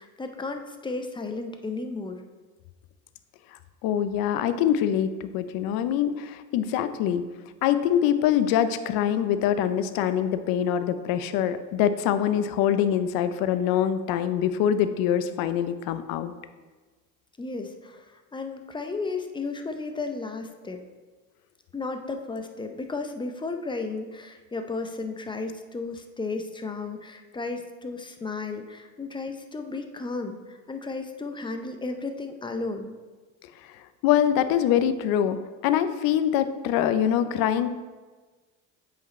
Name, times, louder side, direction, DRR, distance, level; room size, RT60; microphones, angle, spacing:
voice 1, 0.0-2.2 17.4-18.1 18.3-20.8 21.7-30.4 30.7-32.9, left 3 dB, 15° left, 6 dB, 0.5 m, -34 dB
voice 2, 3.8-7.2 7.6-16.3 34.0-35.4 35.6-37.7, left 10 dB, 65° left, 11 dB, 0.6 m, -24 dB
8.0 x 5.0 x 3.1 m, 1.3 s
supercardioid pair, 100°, 38 cm